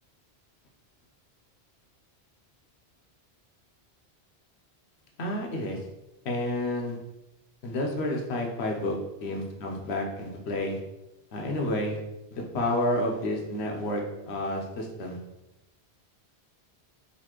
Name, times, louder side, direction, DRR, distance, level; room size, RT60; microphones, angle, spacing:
voice 1, 5.2-5.8 6.2-7.0 7.6-10.8 11.3-12.0 12.3-15.2, left 1 dB, 80° left, 1 dB, 1.0 m, -30 dB
4.1 x 2.7 x 2.9 m, 0.95 s
omnidirectional pair, 1.1 m